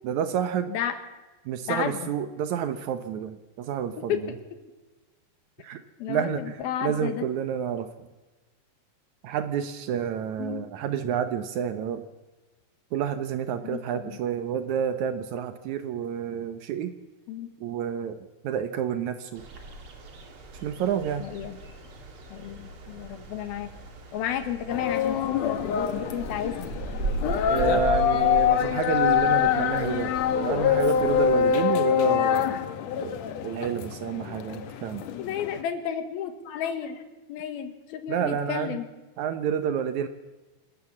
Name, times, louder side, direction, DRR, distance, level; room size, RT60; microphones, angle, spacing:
voice 1, 0.0-0.7 1.5-4.2 5.6-5.8 6.1-8.1 9.2-12.0 12.9-16.9 17.6-18.2 18.4-19.4 20.6-21.3 27.5-32.5 33.0-35.0 38.1-38.8 39.2-40.1, right 8 dB, 80° right, 9 dB, 1.7 m, -29 dB
voice 2, 1.7-2.1 4.0-4.2 6.0-7.3 10.4-10.7 13.6-14.2 17.3-17.5 21.2-21.6 22.3-23.7 24.1-26.7 35.2-38.9, left 9 dB, 70° left, 9 dB, 3.1 m, -32 dB
sound 1, 19.4-31.5, right 3 dB, 35° right, 2.7 m, -38 dB
sound 2, 24.7-35.6, left 8 dB, 90° left, 1.5 m, -25 dB
27.0 x 14.0 x 7.3 m, 1.2 s
omnidirectional pair, 4.8 m